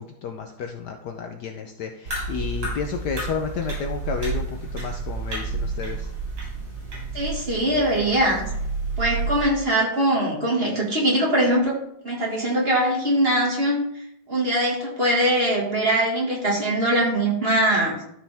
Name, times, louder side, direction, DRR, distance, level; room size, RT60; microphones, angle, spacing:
voice 1, 0.0-6.1, left 6 dB, 65° left, 4 dB, 1.1 m, -31 dB
sound 1, 2.1-9.4, right 3 dB, 70° right, 4.1 m, -30 dB
voice 2, 7.1-8.5 9.0-11.8 12.0-13.8 14.3-18.0, right 1 dB, 30° right, -3 dB, 2.0 m, -22 dB
12.5 x 5.2 x 3.4 m, 0.77 s
omnidirectional pair, 2.2 m